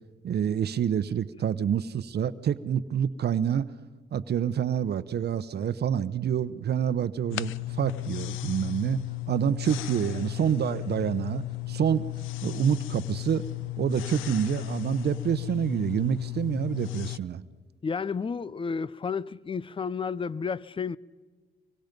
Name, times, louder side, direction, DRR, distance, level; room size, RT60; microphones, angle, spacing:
voice 1, 0.2-3.7 4.1-9.0 9.3-12.1 12.4-13.4 13.8-17.4, right 8 dB, 55° right, 0.9 m, -27 dB
sound 1, 7.3-17.2, left 21 dB, 85° left, 0.5 m, -35 dB
voice 2, 17.8-21.0, left 5 dB, 25° left, 0.6 m, -31 dB
25.5 x 23.5 x 5.3 m
cardioid pair, 90°, 20 cm